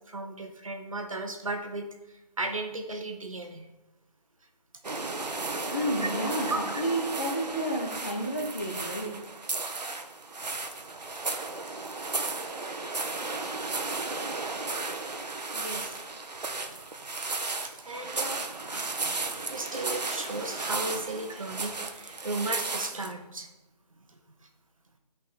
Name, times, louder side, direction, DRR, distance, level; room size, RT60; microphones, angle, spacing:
voice 1, 0.1-3.7 6.5-6.8 13.4-13.5 15.4-16.0 17.3-19.2 19.5-23.5 24.1-24.2, right 2 dB, 55° right, 5 dB, 1.2 m, -36 dB
sound 1, 4.8-23.1, right 3 dB, 85° right, 1.1 m, -34 dB
voice 2, 5.7-9.2, right 1 dB, 25° left, -3 dB, 0.7 m, -31 dB
10.5 x 5.1 x 4.1 m, 1.0 s
figure-of-eight pair, 180°, 21 cm